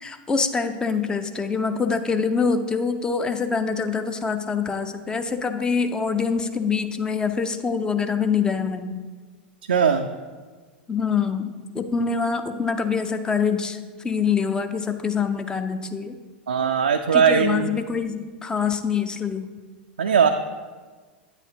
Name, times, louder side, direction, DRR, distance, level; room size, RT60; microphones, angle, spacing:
voice 1, 0.0-9.0 10.9-16.2 17.1-19.5, left 5 dB, 15° left, 8 dB, 0.6 m, -25 dB
voice 2, 9.7-10.1 16.5-17.7 20.0-20.3, right 6 dB, 75° right, 4 dB, 0.4 m, -19 dB
9.2 x 8.9 x 3.0 m, 1.4 s
figure-of-eight pair, 90°, 5 cm